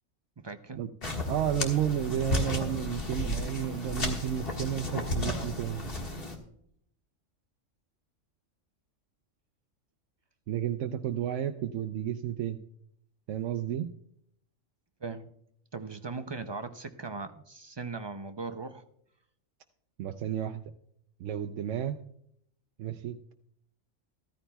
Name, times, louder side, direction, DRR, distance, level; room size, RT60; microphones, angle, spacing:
voice 1, 0.4-0.8 15.0-15.3 15.7-18.8, right 4 dB, 45° right, 8 dB, 0.3 m, -39 dB
sound 1, 1.0-6.4, left 1 dB, 45° left, 1.8 m, -33 dB
voice 2, 1.3-5.9 10.5-12.6 13.3-13.9 20.0-20.6 21.2-22.0 22.8-23.3, right 10 dB, 75° right, 6 dB, 0.9 m, -32 dB
14.5 x 14.0 x 2.3 m, 0.70 s
omnidirectional pair, 1.3 m